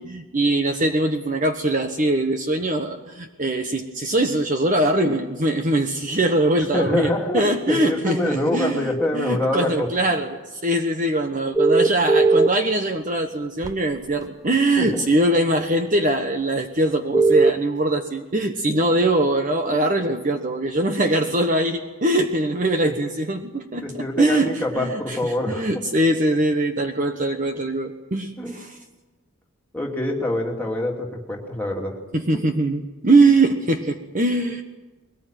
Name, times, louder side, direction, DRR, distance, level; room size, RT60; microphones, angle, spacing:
voice 1, 0.0-28.7 32.1-34.6, right 1 dB, 35° right, 6 dB, 1.2 m, -22 dB
voice 2, 6.7-9.9 14.8-15.0 19.7-19.8 23.7-25.8 28.4-28.5 29.7-32.0, left 1 dB, 10° left, -1 dB, 2.9 m, -25 dB
sound 1, 11.6-12.5 13.6-13.7 17.1-17.5, right 3 dB, 15° right, 0.7 m, -16 dB
22.0 x 18.5 x 9.2 m, 1.2 s
head